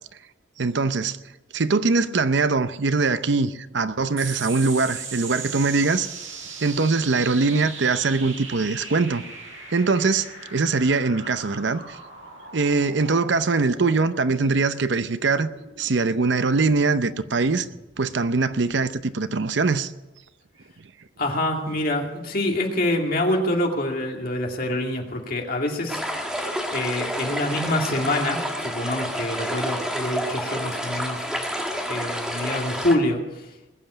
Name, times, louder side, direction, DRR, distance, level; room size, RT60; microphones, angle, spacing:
voice 1, 0.6-1.2 1.5-6.1 6.6-9.2 9.7-12.0 12.5-15.5 15.8-17.7 18.0-19.9, right 4 dB, 60° right, 0.7 m, -22 dB
sound 1, 4.2-19.0, right 4 dB, 85° right, 6.3 m, -39 dB
voice 2, 21.2-26.0 26.3-31.2 31.9-33.5, left 1 dB, 45° left, 2.4 m, -26 dB
sound 2, 25.9-32.9, equal, 5° right, 1.6 m, -29 dB
20.5 x 7.7 x 8.9 m
head